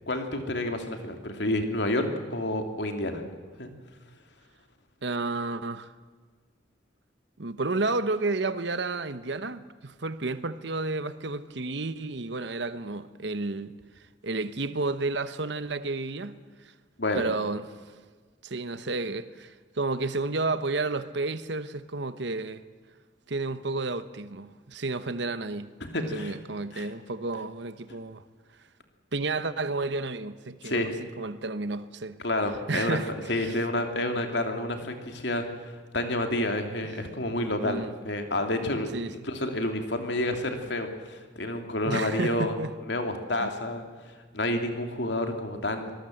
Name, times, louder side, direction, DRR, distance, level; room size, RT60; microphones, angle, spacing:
voice 1, 0.1-3.2 3.6-3.7 17.0-17.2 25.8-26.4 26.7-26.9 30.6-30.9 32.2-33.0 33.3-38.9 39.2-42.5 42.9-45.9, left 1 dB, 65° left, 2.9 m, -29 dB
voice 2, 5.0-5.9 7.4-13.7 14.2-16.4 17.2-17.7 18.4-22.6 23.3-25.7 26.0-28.2 29.1-32.2 32.7-33.6 37.6-37.9 38.9-39.1 41.8-42.7 43.4-43.5, right 3 dB, 65° right, 1.1 m, -31 dB
24.5 x 20.0 x 7.9 m
head